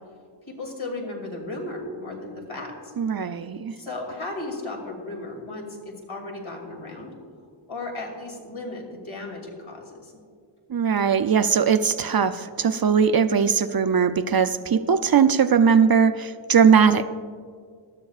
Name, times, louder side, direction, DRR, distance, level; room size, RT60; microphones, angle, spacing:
voice 1, 0.5-2.9 3.8-7.1 7.4-10.1, left 2 dB, 70° left, 1 dB, 2.7 m, -35 dB
voice 2, 3.0-3.7 10.7-17.1, right 6 dB, 50° right, 11 dB, 0.5 m, -20 dB
19.5 x 13.0 x 2.4 m, 2.1 s
wide cardioid pair, 75°, 49 cm